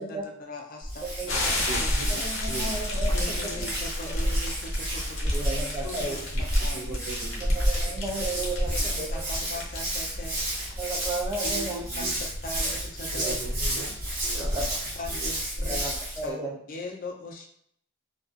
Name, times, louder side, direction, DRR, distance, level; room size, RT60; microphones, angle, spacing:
voice 1, 0.0-2.2 3.1-7.0 8.7-10.7 11.4-13.3 15.0-15.8 16.2-17.4, left 1 dB, 45° left, 1 dB, 0.4 m, -40 dB
Hands, 0.8-16.3, equal, 45° right, 0.9 m, -30 dB
voice 2, 1.2-1.5 2.2-3.1 5.3-6.2 7.5-9.1 10.8-11.8 12.6-12.8 13.2-13.3 14.4-14.7 15.7-16.6, right 2 dB, 15° right, -2 dB, 0.4 m, -33 dB
sound 1, 1.3-15.5, left 2 dB, 70° left, 0.7 m, -37 dB
voice 3, 1.7-2.2 2.5-2.8 3.5-3.8 6.3-6.4 6.7-8.0 11.9-12.1 13.1-14.0 14.2-14.7 15.1-15.3, right 3 dB, 80° right, 2 dB, 0.5 m, -40 dB
2.4 x 2.3 x 2.4 m, 0.66 s
head